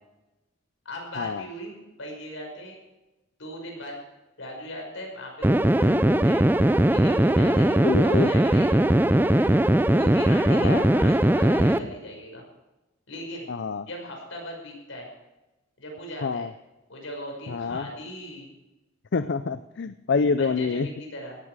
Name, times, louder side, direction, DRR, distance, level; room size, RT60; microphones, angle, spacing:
voice 1, 0.8-2.8 3.4-4.0 4.4-6.4 6.9-8.8 9.1-9.5 9.9-12.4 13.1-13.5 13.8-15.1 15.8-16.5 16.9-18.5 20.4-21.4, equal, 80° left, 1 dB, 5.7 m, -38 dB
sound 1, 5.4-11.8, right 1 dB, 10° right, 0.5 m, -20 dB
voice 2, 7.8-8.3 10.5-10.9 13.5-13.9 16.2-16.5 17.5-17.9 19.1-20.9, left 4 dB, 60° left, 12 dB, 0.5 m, -26 dB
17.0 x 13.0 x 4.8 m, 1.0 s
head